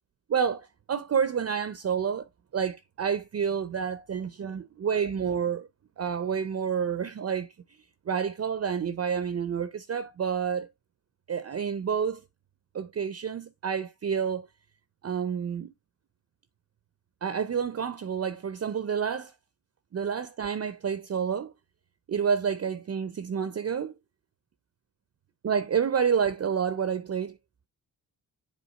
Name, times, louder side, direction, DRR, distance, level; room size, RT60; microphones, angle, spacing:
voice 1, 0.3-2.2 2.5-5.7 6.0-7.5 8.1-10.7 11.3-12.2 12.7-14.5 15.0-15.7 17.2-19.3 19.9-21.5 22.1-23.9 25.4-27.4, right 7 dB, 35° right, 0.7 m, -29 dB
7.3 x 3.0 x 4.3 m
supercardioid pair, 55°, 43 cm